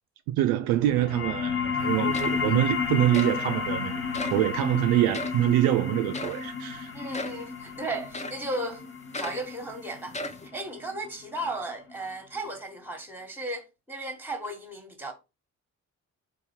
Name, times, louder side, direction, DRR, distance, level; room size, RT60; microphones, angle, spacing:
voice 1, 0.3-4.0 4.3-6.9, right 13 dB, 60° right, 0.5 m, -25 dB
sound 1, 0.8-11.9, left 6 dB, 35° left, 1.0 m, -32 dB
sound 2, 1.8-1.9 2.1-2.6 3.1-3.4 4.1-4.4 5.1-5.4 6.1-6.4 7.1-7.4 8.1-8.5 9.1-9.5 10.1-10.5, left 2 dB, 15° left, 0.7 m, -36 dB
voice 2, 6.9-8.8 9.2-15.1, right 1 dB, 5° right, 1.2 m, -35 dB
3.9 x 2.7 x 4.3 m
figure-of-eight pair, 40°, 40 cm